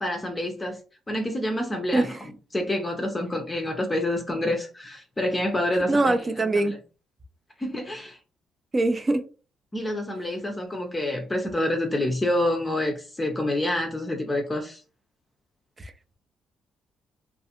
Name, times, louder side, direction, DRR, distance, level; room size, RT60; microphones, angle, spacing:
voice 1, 0.0-0.8 1.1-6.3 6.5-6.8 7.6-8.2 9.7-14.8, left 1 dB, 20° left, 0.5 m, -27 dB
voice 2, 5.9-6.8 8.7-9.2 15.8-15.9, right 2 dB, 30° right, 0.5 m, -23 dB
2.4 x 2.4 x 2.8 m
cardioid pair, 90°, 0 cm